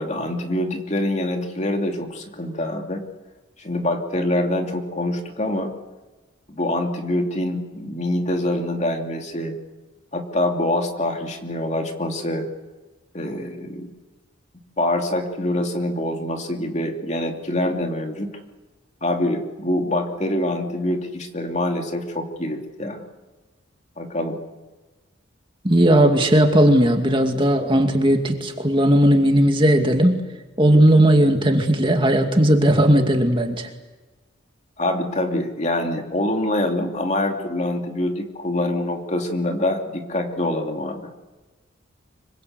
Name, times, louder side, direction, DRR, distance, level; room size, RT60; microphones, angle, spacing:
voice 1, 0.0-3.0 3.6-5.7 6.5-9.5 10.1-12.5 13.1-13.9 14.8-18.3 19.0-23.0 24.0-24.4 34.8-41.1, left 1 dB, 35° left, 3 dB, 2.8 m, -25 dB
voice 2, 25.6-30.2 30.6-33.7, right 1 dB, 25° right, 4 dB, 2.4 m, -17 dB
26.0 x 24.0 x 8.2 m, 1.2 s
head